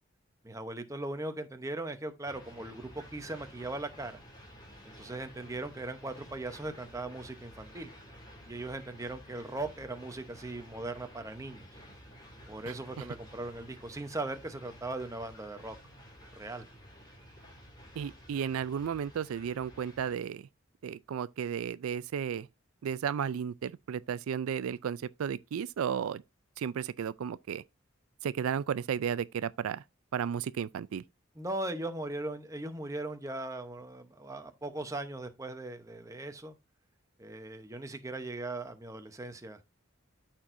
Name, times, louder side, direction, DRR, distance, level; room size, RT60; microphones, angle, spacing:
voice 1, 0.4-4.2 4.8-7.9 8.5-11.7 12.5-15.7 16.3-16.7 31.3-36.5 37.2-39.6, right 2 dB, 15° right, 0.8 m, -39 dB
sound 1, 2.2-20.2, equal, 20° left, 2.3 m, -52 dB
voice 2, 18.0-20.4 20.8-22.5 22.8-26.2 26.6-27.6 28.2-29.8 30.1-31.0, right 8 dB, 85° right, 0.4 m, -33 dB
13.0 x 4.4 x 2.6 m
head